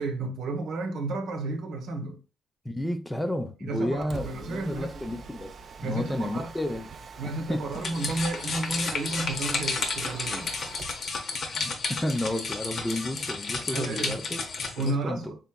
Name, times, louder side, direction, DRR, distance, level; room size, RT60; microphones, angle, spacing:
voice 1, 0.0-2.2 3.6-4.9 5.8-6.5 7.2-10.5 13.7-14.2 14.8-15.4, right 3 dB, 75° right, 0.8 m, -32 dB
voice 2, 2.6-5.5 5.8-6.9 7.2-7.7 11.5-14.4 14.8-15.3, left 1 dB, 10° left, 0.5 m, -31 dB
Mechanisms, 3.8-11.0, right 4 dB, 50° right, 0.4 m, -44 dB
sound 1, 7.7-14.9, left 4 dB, 55° left, 0.7 m, -32 dB
4.0 x 3.3 x 2.2 m
cardioid pair, 90°, 0 cm